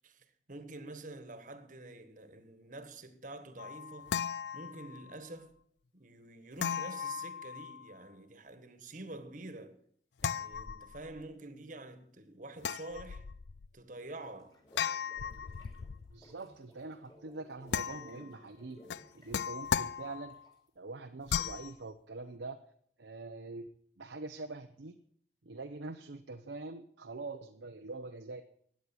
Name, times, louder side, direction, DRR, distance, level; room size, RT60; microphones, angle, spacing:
voice 1, 0.0-4.2 4.5-5.5 5.9-9.8 10.2-13.2 13.7-14.6, right 2 dB, 45° right, 1.5 m, -47 dB
sound 1, 3.6-5.2 6.6-8.0 10.2-11.2 12.6-13.7 14.8-16.2 17.7-18.3 18.9-20.5 21.3-21.7, left 7 dB, 75° left, 0.5 m, -37 dB
sound 2, 13.9-20.7, equal, 25° left, 3.0 m, -59 dB
voice 2, 16.1-18.8 19.1-20.4 20.8-22.6 23.0-23.7 24.0-25.0 25.4-28.4, right 3 dB, 90° right, 0.9 m, -44 dB
14.5 x 9.6 x 7.2 m
head